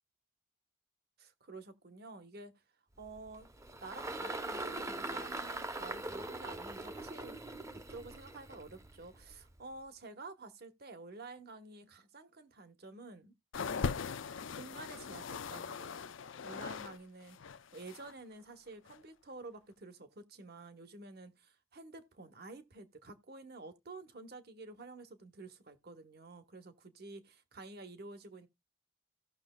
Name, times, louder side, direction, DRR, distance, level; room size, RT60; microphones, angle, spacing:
voice 1, 1.2-2.5 3.0-3.5 3.8-7.4 7.7-14.1 14.5-16.1 16.4-17.4 17.7-28.5, right 3 dB, 50° right, 1.1 m, -50 dB
Engine, 3.0-9.6, right 2 dB, 15° right, 0.6 m, -42 dB
sound 1, 13.5-17.0 17.2-18.1 18.9-19.0, left 5 dB, 75° left, 0.5 m, -40 dB
16.5 x 6.3 x 2.2 m
head